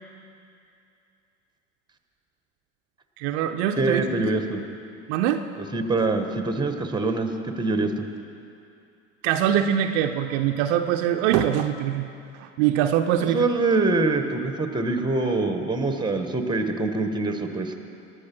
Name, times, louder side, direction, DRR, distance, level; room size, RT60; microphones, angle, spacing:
voice 1, 3.2-4.0 5.1-5.4 9.2-12.1 12.3-13.4, right 10 dB, 60° right, 6 dB, 0.7 m, -23 dB
voice 2, 3.8-4.7 5.7-7.3 7.6-8.1 13.2-17.7, right 3 dB, 10° right, 6 dB, 1.4 m, -24 dB
20.0 x 7.0 x 6.1 m, 2.6 s
hypercardioid pair, 70°, 38 cm